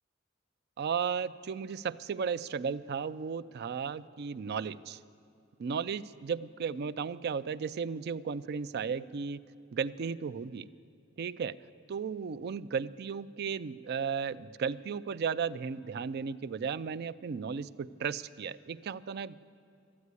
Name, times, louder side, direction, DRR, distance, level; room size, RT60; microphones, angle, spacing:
voice 1, 0.8-5.0 5.6-9.4 9.7-10.7 11.2-11.6 11.9-19.4, right 6 dB, 50° right, 15 dB, 0.4 m, -35 dB
13.0 x 9.6 x 9.6 m, 2.5 s
head